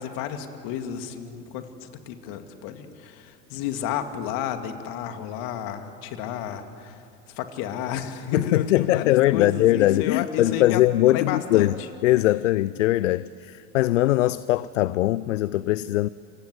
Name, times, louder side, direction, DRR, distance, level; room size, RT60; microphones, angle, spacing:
voice 1, 0.0-7.0 7.4-10.8 11.1-11.7, left 9 dB, 60° left, 2.5 m, -32 dB
voice 2, 8.3-11.8 12.0-16.1, left 16 dB, 80° left, 0.6 m, -21 dB
28.0 x 25.0 x 7.9 m
hypercardioid pair, 75°, 37 cm